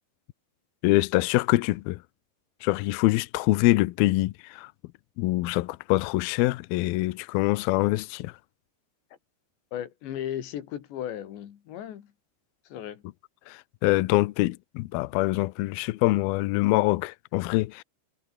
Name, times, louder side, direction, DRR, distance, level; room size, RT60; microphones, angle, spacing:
voice 1, 0.8-2.0 2.6-4.7 5.2-8.3 13.5-17.8, left 19 dB, 85° left, 2.1 m, -24 dB
voice 2, 9.7-12.1 12.7-13.0, left 10 dB, 70° left, 4.5 m, -36 dB
omnidirectional pair, 5.4 m